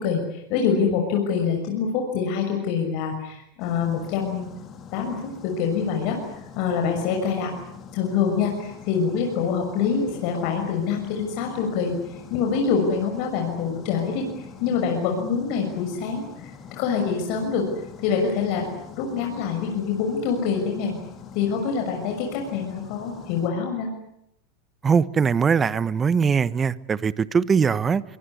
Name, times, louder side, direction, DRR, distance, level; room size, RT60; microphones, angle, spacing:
voice 1, 0.0-4.5 4.9-6.2 6.5-7.5 7.9-17.6 18.0-18.6 19.0-20.9 21.3-23.9, left 6 dB, 55° left, 6.3 m, -25 dB
sound 1, 3.6-23.5, left 6 dB, 35° left, 4.0 m, -43 dB
voice 2, 24.8-28.0, right 6 dB, 25° right, 1.1 m, -21 dB
24.0 x 22.5 x 9.8 m
hypercardioid pair, 100°, 0 cm